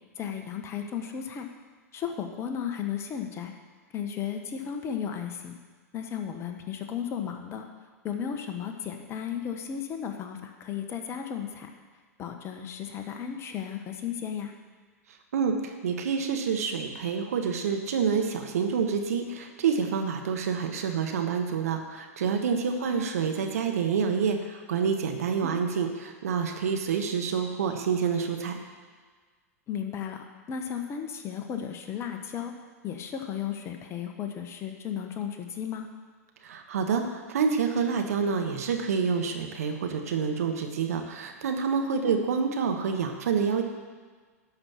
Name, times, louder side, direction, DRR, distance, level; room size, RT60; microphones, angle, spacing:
voice 1, 0.2-1.5 1.9-3.5 3.9-5.5 5.9-7.6 8.0-11.7 12.2-14.5 22.8-23.1 25.4-25.5 29.7-32.5 32.8-35.9 42.0-42.2, left 8 dB, 30° left, 5 dB, 1.3 m, -34 dB
voice 2, 15.8-28.6 36.4-43.6, right 6 dB, 70° right, 4 dB, 1.5 m, -27 dB
11.5 x 5.7 x 7.2 m, 1.5 s
figure-of-eight pair, 95°, 8 cm